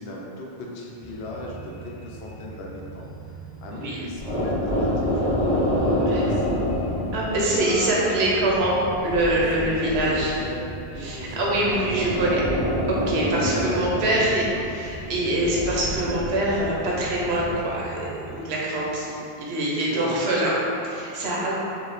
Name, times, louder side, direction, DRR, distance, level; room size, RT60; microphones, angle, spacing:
voice 1, 0.0-3.1 3.6-6.5 7.3-8.3 9.6-10.6 10.9-12.4 13.2-14.6 19.9-20.3, left 1 dB, 75° left, -2 dB, 0.9 m, -37 dB
sound 1, 1.0-18.4, right 4 dB, 5° left, 1.3 m, -42 dB
sound 2, 4.2-17.5, left 1 dB, 45° right, 1.4 m, -28 dB
voice 2, 7.1-10.3 11.0-12.4 12.9-20.6 20.8-21.5, right 1 dB, 90° right, -5 dB, 1.0 m, -24 dB
4.6 x 2.7 x 3.0 m, 2.7 s
omnidirectional pair, 1.1 m